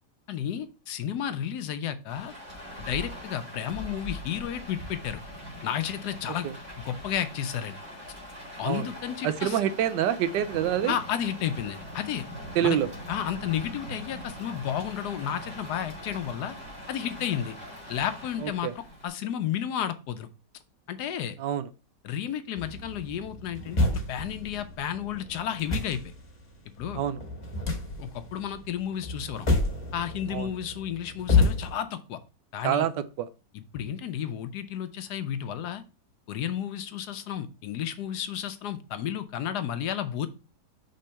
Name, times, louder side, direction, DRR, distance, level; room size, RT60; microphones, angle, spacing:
voice 1, 0.3-2.3 2.9-5.2 5.6-6.5 6.8-7.8 8.6-9.6 10.9-12.2 12.6-12.8 13.1-16.6 16.9-17.6 17.9-20.3 20.9-21.4 22.0-26.0 26.8-27.0 28.0-29.5 29.9-32.2 32.5-32.9 33.5-35.8 36.3-40.3, left 9 dB, 70° left, 10 dB, 1.1 m, -32 dB
Rain, 2.1-19.1, equal, 40° right, 2.4 m, -42 dB
voice 2, 9.2-10.9 12.6-12.9 18.4-18.7 21.4-21.6 27.0-27.2 30.3-30.5 32.6-32.9 33.2-33.3, right 10 dB, 85° right, 13 dB, 1.3 m, -26 dB
sound 1, 22.6-31.7, left 3 dB, 25° left, 1.2 m, -30 dB
5.2 x 3.7 x 5.5 m, 0.32 s
omnidirectional pair, 1.9 m